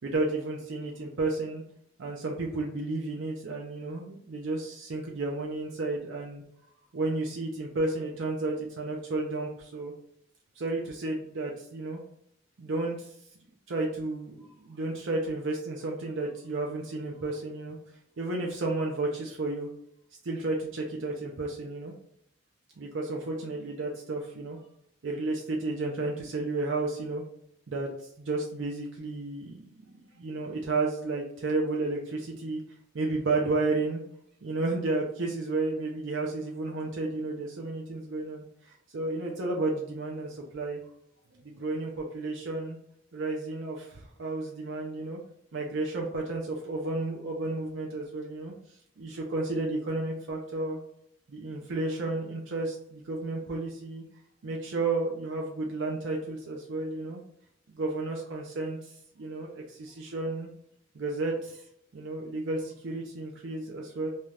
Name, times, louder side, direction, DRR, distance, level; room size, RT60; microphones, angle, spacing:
voice 1, 0.0-1.6 2.0-6.4 6.9-9.9 10.6-12.0 12.6-13.1 13.7-17.8 18.2-19.7 20.2-21.9 22.8-24.6 25.0-27.2 27.7-27.9 28.2-32.6 32.9-34.0 34.4-40.8 41.4-42.8 43.1-45.2 45.5-48.5 49.0-50.8 51.3-54.0 54.4-57.2 57.7-60.5 60.9-61.6 61.9-64.1, right 2 dB, 80° right, -1 dB, 0.5 m, -32 dB
2.7 x 2.3 x 3.2 m, 0.71 s
head